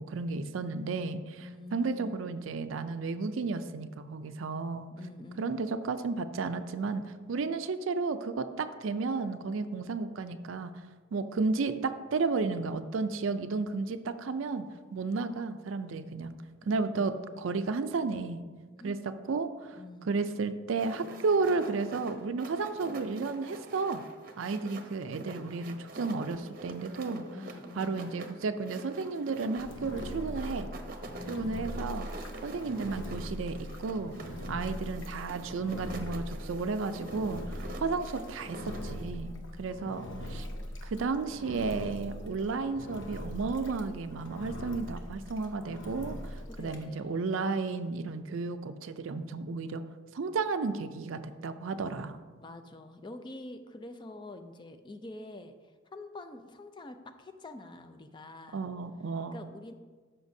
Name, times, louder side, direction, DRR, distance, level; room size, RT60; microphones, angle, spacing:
voice 1, 0.0-4.9 5.4-7.0 7.3-10.7 11.1-14.7 14.9-16.3 16.7-18.4 18.8-19.0 19.3-19.8 20.0-24.0 24.4-27.2 27.8-30.7 31.3-32.1 32.4-34.1 34.5-40.5 40.8-49.8 50.1-52.2 58.5-59.4, right 4 dB, 70° right, 10 dB, 0.4 m, -33 dB
voice 2, 1.4-2.2 4.9-5.6 16.6-17.4 18.8-19.1 19.8-20.2 27.1-28.0 31.0-31.8 34.4-34.9 37.5-38.1 39.4-40.1 46.5-47.2 52.3-58.7 59.3-59.7, left 2 dB, 20° left, 8 dB, 0.4 m, -47 dB
sound 1, 20.7-39.0, right 2 dB, 45° right, 0.7 m, -46 dB
Engine, 29.6-46.9, left 1 dB, 65° left, 0.9 m, -41 dB
13.0 x 5.7 x 2.7 m, 1.4 s
head